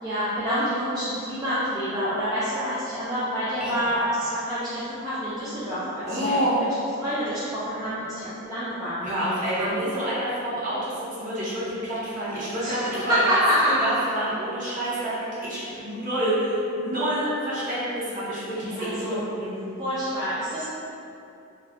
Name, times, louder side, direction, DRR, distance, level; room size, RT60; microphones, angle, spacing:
voice 1, 0.0-6.4 7.0-9.8 12.6-13.9 18.5-19.2 19.8-20.7, equal, 20° right, -12 dB, 0.4 m, -27 dB
voice 2, 6.0-6.6 9.0-13.4 13.7-19.6, right 1 dB, 40° right, -9 dB, 0.8 m, -28 dB
2.3 x 2.1 x 3.5 m, 2.7 s
head